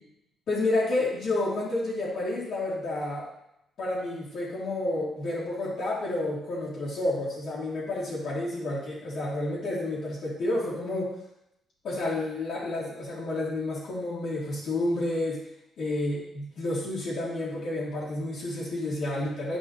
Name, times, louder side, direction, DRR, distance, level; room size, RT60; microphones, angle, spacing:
voice 1, 0.5-3.2 3.8-11.1 11.8-15.4 15.8-19.6, left 2 dB, 70° left, -11 dB, 2.8 m, -30 dB
10.0 x 5.4 x 3.3 m, 0.80 s
cardioid pair, 90°, 0 cm